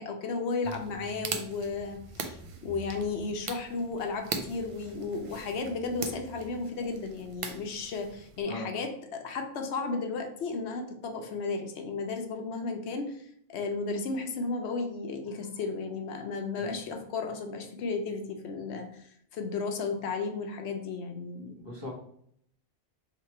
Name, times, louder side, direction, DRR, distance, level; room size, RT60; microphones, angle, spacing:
voice 1, 0.0-13.2 13.5-21.6, left 4 dB, 85° left, 4 dB, 0.9 m, -34 dB
sound 1, 0.6-8.4, right 4 dB, 55° right, 0.3 m, -41 dB
voice 2, 21.6-21.9, left 2 dB, 25° right, -5 dB, 1.0 m, -39 dB
2.9 x 2.9 x 4.4 m, 0.69 s
omnidirectional pair, 1.1 m